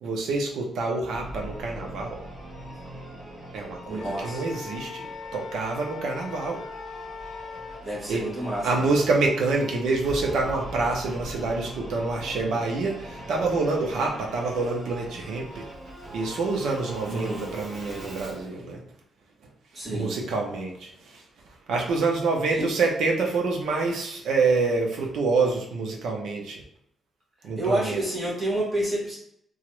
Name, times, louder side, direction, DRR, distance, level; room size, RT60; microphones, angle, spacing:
voice 1, 0.0-2.2 3.5-5.1 5.3-6.6 8.1-8.2 8.6-15.6 16.1-18.8 19.9-21.2 21.7-26.6 27.4-28.0, right 3 dB, 90° right, 1 dB, 0.7 m, -26 dB
Singing / Musical instrument, 1.1-18.5, right 1 dB, 65° right, 1.4 m, -42 dB
Wind instrument woodwind instrument, 3.9-7.8, left 5 dB, 60° left, 0.3 m, -40 dB
voice 2, 3.9-4.4 7.8-9.0 17.0-17.5 19.7-20.2 22.5-22.7 27.6-29.2, right 1 dB, 25° right, -6 dB, 1.2 m, -29 dB
2.9 x 2.4 x 3.1 m, 0.75 s
wide cardioid pair, 165°, 0 cm